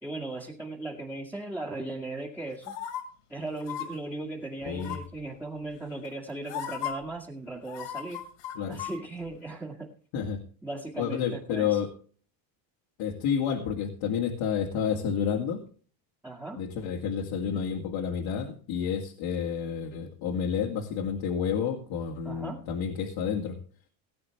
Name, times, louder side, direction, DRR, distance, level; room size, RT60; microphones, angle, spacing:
voice 1, 0.0-2.8 3.3-8.2 8.7-9.9 10.6-11.8 16.2-16.6 22.2-22.6, right 2 dB, 5° right, -4 dB, 2.0 m, -37 dB
sound 1, 2.6-3.0 3.6-3.9 4.8-5.2 6.0-6.1 6.5-6.9 7.7-8.9 9.3-9.4, left 11 dB, 80° left, 2.7 m, -35 dB
voice 2, 4.6-5.0 8.5-8.8 10.1-10.4 11.0-11.9 13.0-15.6 16.6-23.6, left 7 dB, 65° left, 0 dB, 2.3 m, -30 dB
18.0 x 8.7 x 3.4 m, 0.41 s
supercardioid pair, 115°, 50 cm